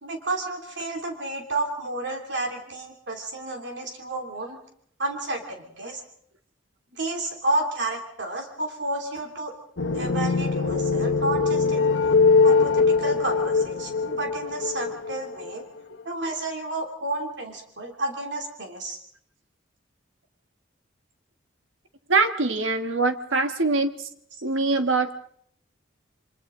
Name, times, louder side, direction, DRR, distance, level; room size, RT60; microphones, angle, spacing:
voice 1, 0.0-4.6 5.0-6.0 6.9-9.5 9.9-11.9 12.4-15.6 16.0-19.0, right 2 dB, 65° right, 2 dB, 2.8 m, -31 dB
sound 1, 9.8-15.6, left 4 dB, 70° left, 0.9 m, -22 dB
voice 2, 22.1-24.1 24.4-25.1, right 3 dB, 85° right, 8 dB, 1.5 m, -23 dB
28.0 x 25.0 x 3.8 m, 0.65 s
head